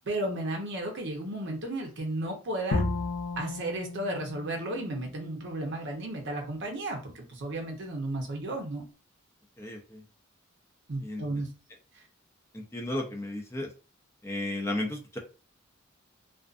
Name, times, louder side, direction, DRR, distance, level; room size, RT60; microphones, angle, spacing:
voice 1, 0.0-2.8 3.4-8.8 10.9-11.5, right 1 dB, 60° right, 2 dB, 0.8 m, -34 dB
Bowed string instrument, 2.7-5.8, left 2 dB, 80° left, 0.5 m, -34 dB
voice 2, 9.6-10.0 11.0-11.2 12.5-13.7 14.2-15.2, left 1 dB, 15° left, 0 dB, 0.5 m, -34 dB
2.5 x 2.4 x 2.4 m, 0.33 s
head